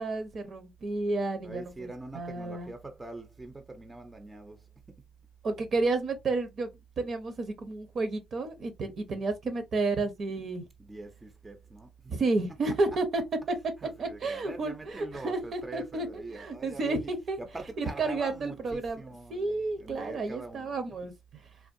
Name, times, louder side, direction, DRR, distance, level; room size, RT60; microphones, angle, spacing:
voice 1, 0.0-2.7 5.4-6.7 7.0-10.6 12.1-13.2 13.5-13.6 14.0-17.4 17.8-19.0 19.3-21.4, right 3 dB, 55° right, 0.9 m, -31 dB
voice 2, 1.4-4.7 10.8-12.1 13.8-17.1 17.4-20.8, right 2 dB, 20° right, 0.7 m, -44 dB
3.5 x 2.3 x 2.6 m
cardioid pair, 90°, 0 cm